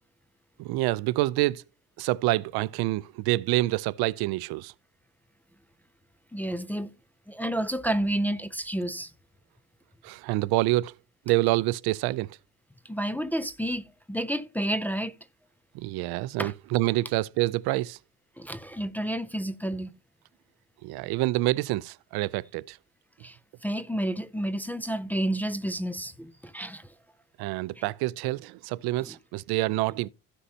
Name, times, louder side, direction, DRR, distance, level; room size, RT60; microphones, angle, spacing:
voice 1, 0.6-1.6 2.0-4.7 10.0-10.9 11.3-12.4 15.7-18.0 20.8-22.8 27.4-30.1, right 18 dB, 85° right, 0.5 m, -27 dB
voice 2, 6.3-6.9 7.3-9.1 12.8-15.2 16.4-16.5 18.4-19.9 23.2-23.4 23.6-26.9 29.0-29.2, right 1 dB, 5° left, 0.3 m, -30 dB
16.0 x 5.5 x 2.7 m
cardioid pair, 160°, 37 cm